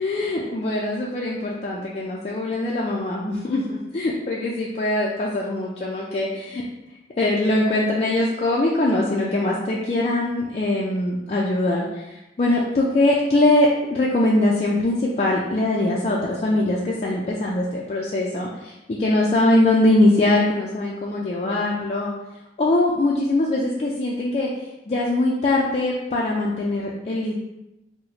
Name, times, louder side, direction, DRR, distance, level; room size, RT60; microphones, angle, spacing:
voice 1, 0.0-6.6 7.2-22.1 22.6-24.5 24.9-27.3, left 2 dB, 35° left, -4 dB, 0.3 m, -22 dB
3.9 x 2.1 x 2.8 m, 0.96 s
head